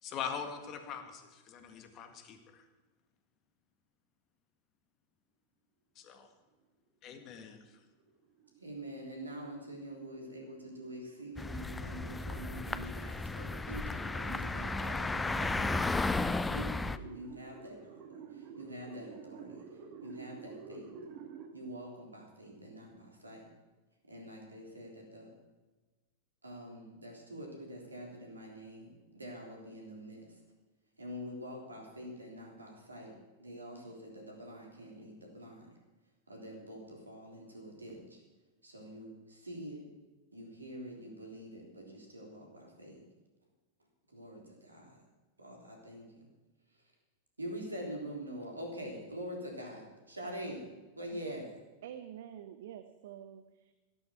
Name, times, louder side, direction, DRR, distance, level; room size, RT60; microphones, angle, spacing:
voice 1, 0.0-2.7 6.0-6.3 7.0-7.8, left 7 dB, 35° left, 7 dB, 1.9 m, -42 dB
sound 1, 7.1-21.5, right 6 dB, 40° right, 1.6 m, -52 dB
voice 2, 8.6-15.9 16.4-19.6 20.0-20.9 21.5-23.5 24.1-25.3 26.4-30.4 31.0-35.7 36.3-38.2 38.6-39.9 40.3-43.0 44.1-45.0 45.4-46.3 47.4-51.5, equal, 80° right, 0 dB, 3.6 m, -45 dB
sound 2, 11.4-17.0, left 3 dB, 10° left, 0.5 m, -34 dB
voice 3, 51.8-53.7, right 10 dB, 55° right, 11 dB, 0.7 m, -47 dB
14.0 x 12.0 x 5.8 m, 1.2 s
figure-of-eight pair, 90°, 0 cm